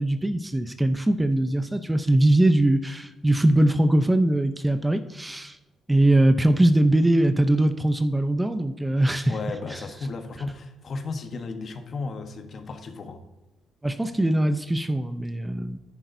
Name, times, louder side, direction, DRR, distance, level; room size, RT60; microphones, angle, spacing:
voice 1, 0.0-5.6 5.9-9.3 13.8-15.8, right 1 dB, 10° right, 9 dB, 0.6 m, -21 dB
voice 2, 9.3-13.2, left 3 dB, 50° left, 7 dB, 1.1 m, -34 dB
10.5 x 10.0 x 2.7 m, 1.0 s
cardioid pair, 90°, 0 cm